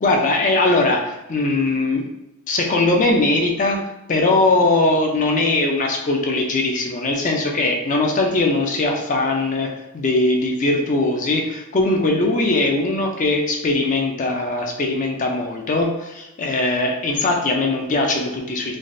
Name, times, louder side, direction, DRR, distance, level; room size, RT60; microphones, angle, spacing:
voice 1, 0.0-2.0 2.5-3.8 4.1-18.8, left 2 dB, 35° left, 2 dB, 0.4 m, -20 dB
3.2 x 2.4 x 2.6 m, 0.95 s
head